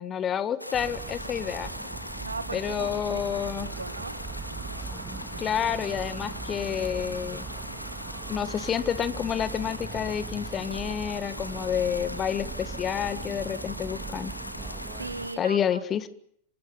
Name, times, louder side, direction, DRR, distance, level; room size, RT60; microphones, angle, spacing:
voice 1, 0.0-1.7 2.5-3.7 5.4-7.5 8.3-14.3 15.4-16.1, left 9 dB, 25° left, 13 dB, 1.7 m, -29 dB
sound 1, 0.6-15.4, left 1 dB, 90° left, 1.8 m, -39 dB
Motor vehicle (road) / Siren, 0.7-15.3, right 5 dB, 15° right, 1.9 m, -40 dB
voice 2, 2.2-4.2 15.0-15.8, right 3 dB, 80° right, 13 dB, 1.7 m, -38 dB
28.0 x 25.5 x 5.8 m, 0.68 s
figure-of-eight pair, 90°, 0 cm